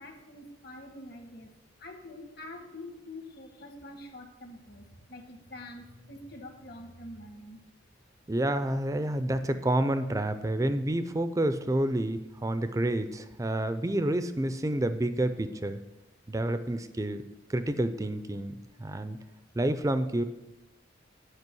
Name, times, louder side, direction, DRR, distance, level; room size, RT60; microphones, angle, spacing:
voice 1, 0.0-1.5 1.8-7.6, left 1 dB, 55° left, 4 dB, 1.3 m, -46 dB
voice 2, 8.3-15.8 16.3-17.2 17.5-19.2 19.6-20.2, right 1 dB, 15° right, 10 dB, 0.4 m, -29 dB
9.6 x 5.1 x 6.1 m, 0.98 s
head